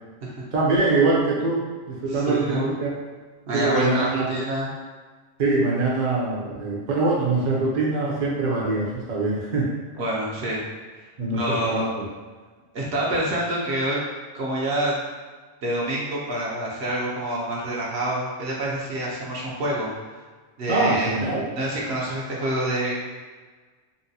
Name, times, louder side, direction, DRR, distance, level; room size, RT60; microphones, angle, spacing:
voice 1, 0.5-2.9 3.5-4.3 5.4-9.7 11.2-12.0 20.7-21.4, right 3 dB, 50° right, -4 dB, 0.7 m, -23 dB
voice 2, 2.1-2.6 3.5-4.7 9.9-10.6 11.3-11.9 12.7-14.0 14.3-15.0 15.6-19.9 20.6-21.2 21.6-23.0, right 1 dB, 70° right, -5 dB, 1.0 m, -27 dB
3.9 x 2.2 x 2.7 m, 1.4 s
omnidirectional pair, 1.1 m